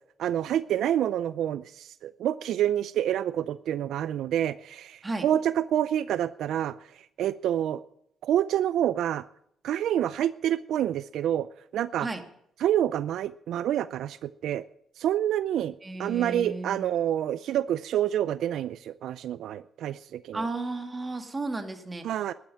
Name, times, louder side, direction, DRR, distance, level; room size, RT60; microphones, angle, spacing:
voice 1, 0.2-6.8 7.2-7.8 8.2-9.2 9.6-11.5 11.7-12.1 12.6-14.6 15.0-15.7 16.0-20.5 22.0-22.3, right 11 dB, 75° right, 15 dB, 0.4 m, -27 dB
voice 2, 15.8-16.9 20.3-22.2, right 2 dB, 20° right, 5 dB, 2.3 m, -34 dB
12.0 x 9.4 x 9.7 m, 0.72 s
cardioid pair, 90°, 0 cm